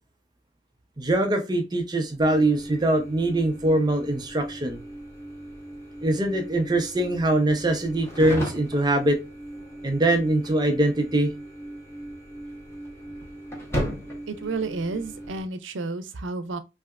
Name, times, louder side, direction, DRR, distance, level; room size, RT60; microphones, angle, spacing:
voice 1, 1.0-4.8 6.0-9.2 9.8-11.3, right 1 dB, 20° right, 0.5 m, -23 dB
sound 1, 2.2-15.4, equal, 15° left, 0.9 m, -37 dB
voice 2, 14.3-16.6, right 3 dB, 90° right, 0.5 m, -31 dB
3.3 x 2.7 x 2.3 m
head